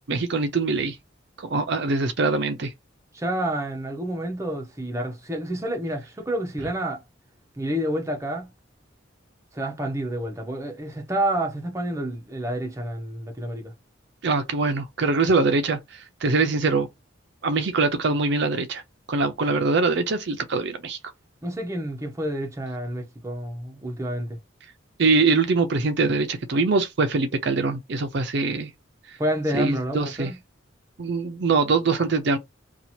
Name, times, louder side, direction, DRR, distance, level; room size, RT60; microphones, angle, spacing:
voice 1, 0.1-1.0 1.5-2.7 14.2-16.9 17.4-18.8 19.1-21.0 25.0-28.7 29.5-30.3 31.0-32.4, right 3 dB, 60° right, 0.5 m, -23 dB
voice 2, 3.1-7.0 7.6-8.5 9.5-13.7 21.4-24.4 29.2-30.4, right 1 dB, 15° right, 0.7 m, -29 dB
2.8 x 2.3 x 4.2 m
head